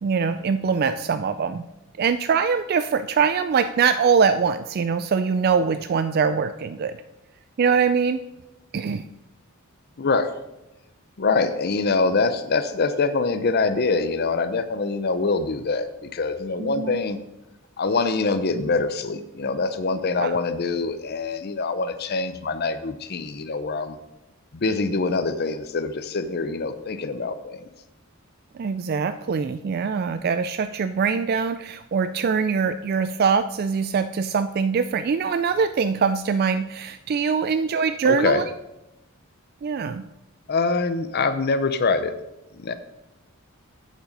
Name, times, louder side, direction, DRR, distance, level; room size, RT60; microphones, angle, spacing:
voice 1, 0.0-1.6 2.0-6.9 7.6-8.2 8.7-9.0 16.6-17.0 20.2-20.4 28.5-38.4 39.6-40.0, right 6 dB, 45° right, 12 dB, 0.3 m, -23 dB
voice 2, 10.0-10.4 11.2-17.2 17.8-24.0 24.6-27.6 38.0-38.4 40.5-42.1 42.6-42.7, left 4 dB, 45° left, 10 dB, 0.6 m, -24 dB
8.9 x 7.3 x 5.3 m, 0.93 s
head